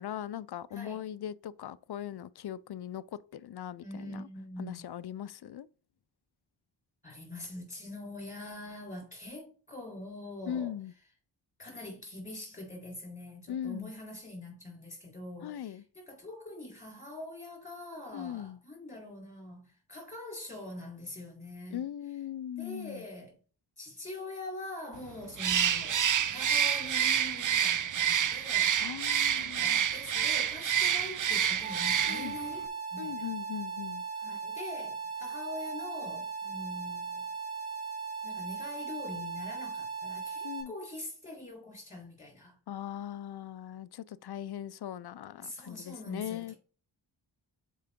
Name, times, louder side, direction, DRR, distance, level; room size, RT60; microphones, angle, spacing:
voice 1, 0.0-4.3 4.6-5.7 10.5-10.9 13.5-13.9 15.4-15.8 18.1-18.6 21.7-23.0 28.8-29.8 32.1-32.4 33.0-34.0 40.4-40.7 42.7-46.5, left 10 dB, 60° left, 0.5 m, -39 dB
voice 2, 0.7-1.0 3.8-4.8 7.0-10.7 11.6-21.9 22.6-23.3 23.8-28.8 29.3-33.3 34.2-37.3 38.2-42.6 45.4-46.6, left 1 dB, 15° left, 3.6 m, -44 dB
Bird, 25.4-32.4, right 8 dB, 45° right, 0.4 m, -28 dB
sound 1, 31.6-40.6, right 5 dB, 80° right, 2.6 m, -38 dB
6.6 x 4.7 x 3.6 m
wide cardioid pair, 85°, 46 cm